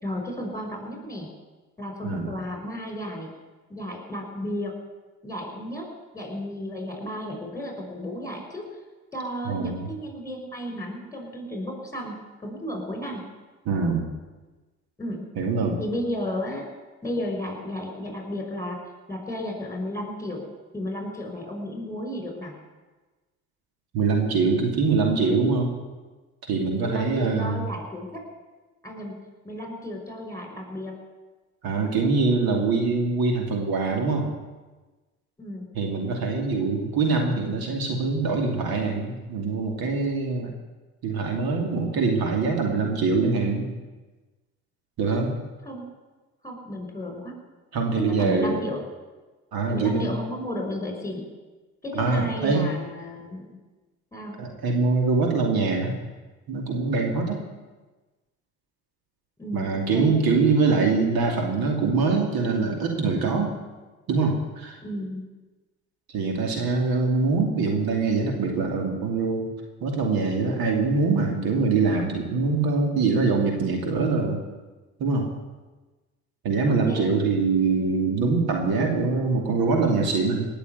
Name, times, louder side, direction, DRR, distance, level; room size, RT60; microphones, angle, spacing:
voice 1, 0.0-1.3 1.8-3.3 3.7-4.8 5.2-5.9 6.1-8.7 9.1-13.2 15.0-15.3 15.8-16.7 17.0-18.8 19.1-20.4 20.7-22.6 26.8-28.2 28.8-31.0 35.4-35.7 45.7-45.9 46.4-47.3 47.9-48.8 49.7-51.3 51.8-53.6 54.1-54.4 59.4-60.2 64.8-65.3 76.7-77.1, equal, 10° left, 2 dB, 5.9 m, -33 dB
voice 2, 9.4-9.9 13.7-14.1 15.4-15.8 23.9-25.7 26.5-27.7 31.6-34.3 35.7-40.5 41.0-43.7 45.0-45.3 47.7-48.6 49.5-50.1 51.9-52.7 54.4-55.9 56.5-57.4 59.5-63.5 64.1-64.8 66.1-69.5 69.8-74.4 75.0-75.3 76.4-80.5, right 4 dB, 75° right, 2 dB, 2.8 m, -23 dB
18.5 x 6.9 x 9.5 m, 1.2 s
supercardioid pair, 55°, 37 cm